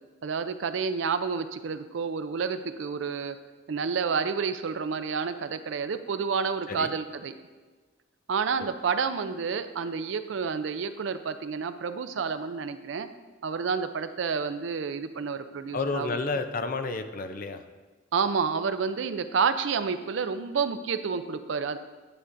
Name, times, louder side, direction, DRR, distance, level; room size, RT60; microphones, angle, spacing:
voice 1, 0.2-3.4 3.7-7.3 8.3-13.1 13.4-16.2 18.1-21.8, right 5 dB, 70° right, 10 dB, 0.4 m, -29 dB
voice 2, 15.7-17.7, left 3 dB, 45° left, 8 dB, 0.5 m, -31 dB
9.8 x 8.0 x 2.6 m, 1.3 s
head